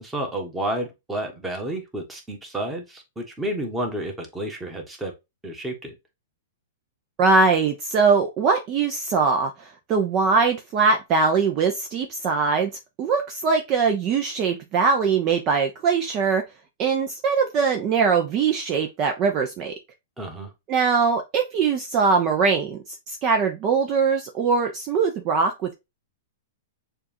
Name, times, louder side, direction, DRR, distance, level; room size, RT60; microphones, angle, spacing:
voice 1, 0.0-5.1 5.4-5.9 20.2-20.5, right 1 dB, 10° right, 1.4 m, -30 dB
voice 2, 7.2-12.7 13.0-16.4 16.8-19.7 20.7-25.7, right 5 dB, 35° right, 0.8 m, -22 dB
6.7 x 2.6 x 2.9 m
hypercardioid pair, 115°, 0 cm